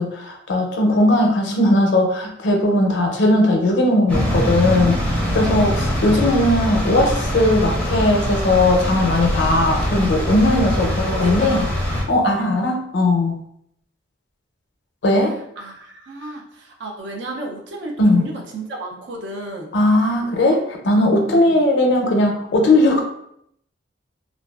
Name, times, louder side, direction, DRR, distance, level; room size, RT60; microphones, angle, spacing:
voice 1, 0.0-5.0 5.3-11.6 12.1-13.3 15.0-15.3 18.0-18.3 19.7-23.0, left 1 dB, 70° left, 2 dB, 0.5 m, -18 dB
sound 1, 4.1-12.0, equal, 5° left, 0.5 m, -23 dB
voice 2, 5.5-5.8 10.6-11.7 12.4-12.5 15.2-15.3 15.6-19.7 21.3-21.6, right 2 dB, 65° right, 0 dB, 0.5 m, -33 dB
2.4 x 2.2 x 2.3 m, 0.73 s
head